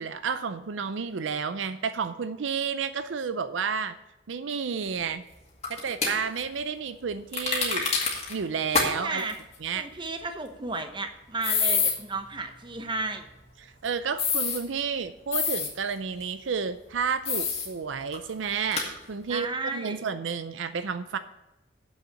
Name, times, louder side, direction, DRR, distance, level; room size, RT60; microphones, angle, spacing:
voice 1, 0.0-4.0 4.3-5.2 5.7-7.9 8.3-9.2 9.6-9.9 13.8-21.2, right 6 dB, 75° right, 11 dB, 0.5 m, -31 dB
sound 1, 5.6-6.1 7.3-8.3 8.7-8.9 9.2-9.3 11.4-11.9 14.2-14.6 15.3-15.7 17.3-17.7 18.1-18.2 18.7-18.9, left 5 dB, 35° left, 2.1 m, -26 dB
voice 2, 8.8-9.4 9.7-13.3 19.3-20.0, right 3 dB, 25° right, 6 dB, 0.9 m, -33 dB
7.3 x 6.4 x 7.7 m, 0.97 s
head